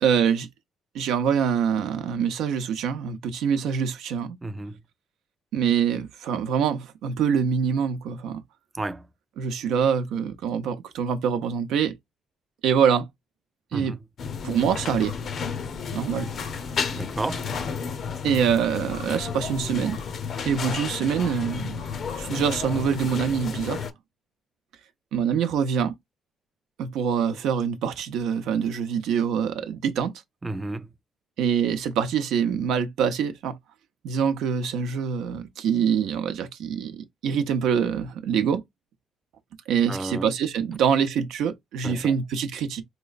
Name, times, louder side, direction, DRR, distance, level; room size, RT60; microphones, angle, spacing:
voice 1, 0.0-0.5 0.9-4.4 5.5-8.4 9.4-12.0 12.6-13.1 13.7-14.0 14.4-15.1 15.9-16.3 18.2-20.0 20.4-21.8 22.2-23.9 25.1-25.9 26.8-30.1 31.4-33.6 34.0-38.6 39.7-42.8, right 7 dB, 85° right, 0.7 m, -25 dB
voice 2, 4.4-4.8 8.7-9.0 13.7-14.0 16.9-17.5 30.4-30.9 39.9-40.3 41.8-42.1, right 2 dB, 20° right, 0.4 m, -32 dB
sound 1, 14.2-23.9, left 6 dB, 60° left, 0.6 m, -32 dB
4.1 x 3.0 x 2.4 m
cardioid pair, 90°, 0 cm